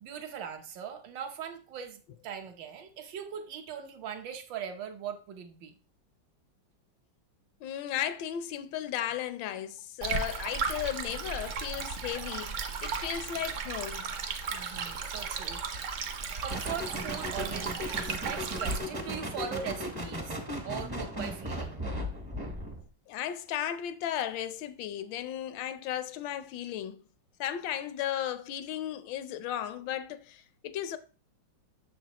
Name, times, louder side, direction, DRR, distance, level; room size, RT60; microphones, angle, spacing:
voice 1, 0.0-5.7 14.5-15.6 16.4-20.4 20.6-21.8, right 8 dB, 75° right, 1.5 m, -40 dB
voice 2, 7.6-14.1 23.1-27.0 27.4-31.0, left 11 dB, 80° left, 1.3 m, -35 dB
Stream, 10.0-18.8, right 5 dB, 55° right, 0.9 m, -35 dB
sound 1, 16.5-22.8, equal, 25° right, 0.5 m, -36 dB
7.2 x 6.5 x 2.9 m
omnidirectional pair, 2.1 m